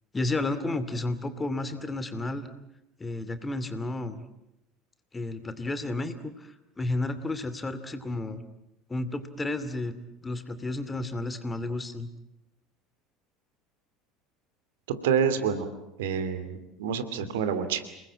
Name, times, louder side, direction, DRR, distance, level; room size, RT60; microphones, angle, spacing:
voice 1, 0.1-2.5 3.0-4.2 5.1-8.4 8.9-9.9 10.2-12.1, left 2 dB, 15° left, 11 dB, 2.7 m, -32 dB
voice 2, 15.0-15.7 16.0-17.8, right 7 dB, 65° right, 10 dB, 2.7 m, -27 dB
29.5 x 20.5 x 8.8 m, 0.89 s
figure-of-eight pair, 70°, 0 cm